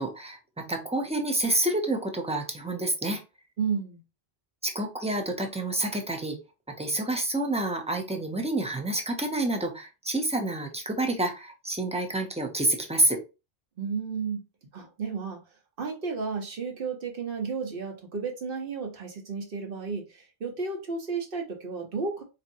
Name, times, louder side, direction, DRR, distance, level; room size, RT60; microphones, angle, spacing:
voice 1, 0.0-3.2 4.6-6.4 6.7-13.2, right 2 dB, 10° right, 4 dB, 0.4 m, -28 dB
voice 2, 3.6-4.0 13.8-14.4 14.7-15.4 15.8-22.2, right 5 dB, 60° right, 2 dB, 1.0 m, -32 dB
4.1 x 2.6 x 2.6 m, 0.28 s
omnidirectional pair, 1.1 m